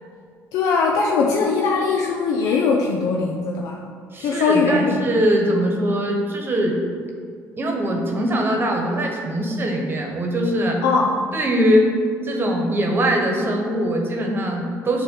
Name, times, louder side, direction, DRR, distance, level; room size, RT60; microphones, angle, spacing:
voice 1, 0.5-3.8 4.2-5.0 10.8-11.2, left 4 dB, 80° left, 0 dB, 0.5 m, -20 dB
voice 2, 4.1-6.8 7.6-10.8 11.3-11.9 12.2-15.0, equal, 35° right, 1 dB, 1.1 m, -21 dB
6.9 x 2.9 x 5.5 m, 2.2 s
supercardioid pair, 80°, 6 cm